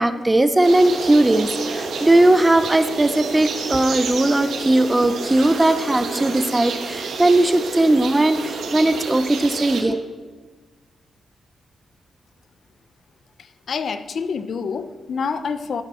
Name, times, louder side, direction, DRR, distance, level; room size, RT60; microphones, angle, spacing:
voice 1, 0.0-10.0, right 1 dB, 10° right, 11 dB, 0.4 m, -18 dB
sound 1, 0.6-9.8, right 4 dB, 75° right, 1.5 m, -29 dB
voice 2, 13.4-15.8, left 5 dB, 50° left, 12 dB, 0.5 m, -27 dB
11.5 x 10.5 x 4.2 m, 1.4 s
wide cardioid pair, 175°, 0 cm